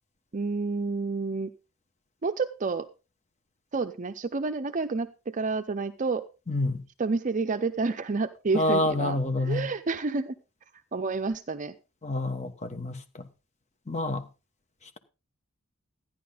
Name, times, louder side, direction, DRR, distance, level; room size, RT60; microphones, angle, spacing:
voice 1, 0.3-1.5 2.2-2.9 3.7-6.2 7.0-9.2 9.4-10.3 10.9-11.7, right 4 dB, 35° right, 0.5 m, -29 dB
voice 2, 6.5-6.8 8.5-9.7 12.0-13.3 13.9-14.2, left 2 dB, 35° left, 1.2 m, -28 dB
14.0 x 10.5 x 3.9 m
head